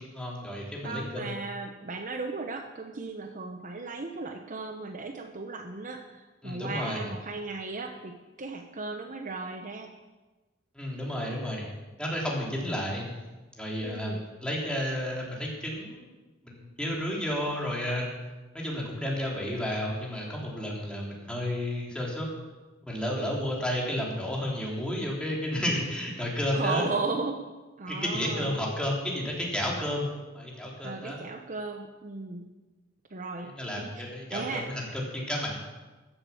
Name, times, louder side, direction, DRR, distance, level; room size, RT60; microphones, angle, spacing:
voice 1, 0.0-1.3 6.4-7.1 10.7-11.7 12.0-13.0 13.6-16.1 16.4-18.1 18.5-22.3 22.8-26.9 27.9-30.1 30.3-31.2 33.4-35.6, left 1 dB, 5° left, -3 dB, 3.2 m, -32 dB
voice 2, 0.8-9.9 13.8-14.2 26.5-27.4 27.8-28.6 30.8-32.5 33.1-33.5 33.8-34.9, right 3 dB, 40° right, 5 dB, 0.9 m, -36 dB
14.5 x 8.0 x 7.1 m, 1.2 s
head